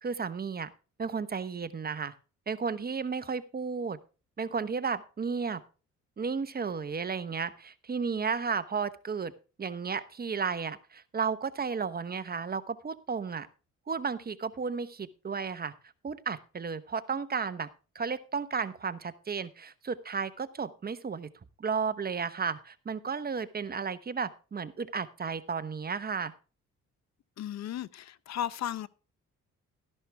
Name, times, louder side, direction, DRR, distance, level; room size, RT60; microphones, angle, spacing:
voice 1, 0.0-0.7 1.0-2.1 2.5-4.0 4.4-5.6 6.2-9.3 9.6-13.5 13.9-15.7 16.0-17.7 17.9-21.3 21.6-26.3, right 5 dB, 30° right, 1.0 m, -33 dB
voice 2, 27.4-28.9, left 11 dB, 60° left, 0.7 m, -35 dB
13.5 x 11.0 x 3.4 m
cardioid pair, 90°, 30 cm